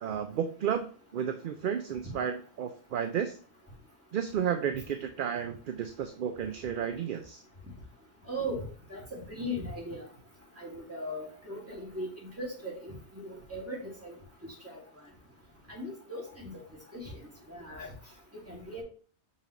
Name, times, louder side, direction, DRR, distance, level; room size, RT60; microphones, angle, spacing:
voice 1, 0.0-3.4 4.1-7.4, right 8 dB, 60° right, 7 dB, 0.6 m, -32 dB
voice 2, 8.3-8.6 8.9-10.0 10.6-14.2 15.7-16.6 16.9-17.1 17.5-17.9 18.3-18.8, equal, 10° right, -4 dB, 2.4 m, -38 dB
6.0 x 5.6 x 3.0 m, 0.42 s
omnidirectional pair, 1.1 m